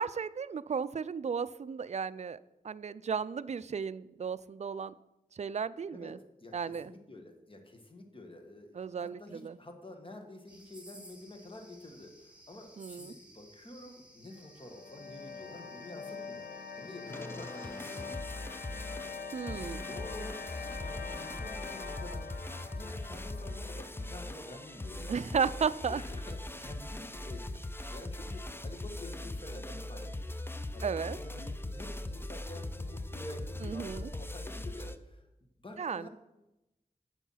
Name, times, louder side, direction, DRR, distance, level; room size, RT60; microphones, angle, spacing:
voice 1, 0.0-2.4 2.6-4.9 5.3-6.2 6.5-6.9 8.8-9.6 12.8-13.1 19.3-19.8 25.1-26.0 30.8-31.2 33.6-34.1 35.8-36.1, right 6 dB, 50° right, 16 dB, 0.4 m, -34 dB
voice 2, 6.4-16.5 16.8-18.2 19.4-22.3 22.7-25.4 25.9-27.6 27.9-30.3 30.7-35.2 35.6-36.1, left 1 dB, 35° left, 4 dB, 1.7 m, -49 dB
sound 1, 10.5-18.0, right 1 dB, 5° right, 2.3 m, -56 dB
sound 2, 14.3-25.4, left 5 dB, 80° left, 0.6 m, -44 dB
sound 3, 17.1-35.0, left 1 dB, 15° left, 0.6 m, -41 dB
8.2 x 7.0 x 5.7 m, 0.96 s
wide cardioid pair, 65°, 15 cm